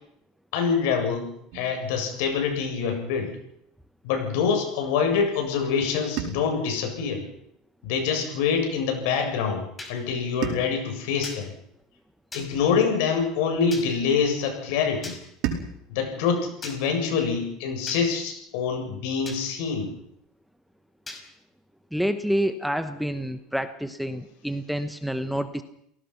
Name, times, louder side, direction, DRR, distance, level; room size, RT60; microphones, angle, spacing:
voice 1, 0.5-3.4 4.0-7.3 7.8-11.5 12.3-15.2 15.9-19.9, left 6 dB, 75° left, 4 dB, 7.9 m, -25 dB
sound 1, 1.5-3.7 6.2-8.5 10.4-12.9 15.4-18.0, right 9 dB, 60° right, 4.9 m, -39 dB
sound 2, 9.8-9.9 11.2-11.4 12.3-12.5 13.7-13.9 15.0-15.2 16.6-16.8 17.9-18.0 19.3-19.4 21.1-21.2, left 2 dB, 15° left, 5.3 m, -38 dB
voice 2, 21.9-25.6, equal, ahead, 10 dB, 1.2 m, -28 dB
29.0 x 18.0 x 5.9 m, 0.73 s
supercardioid pair, 135°, 0 cm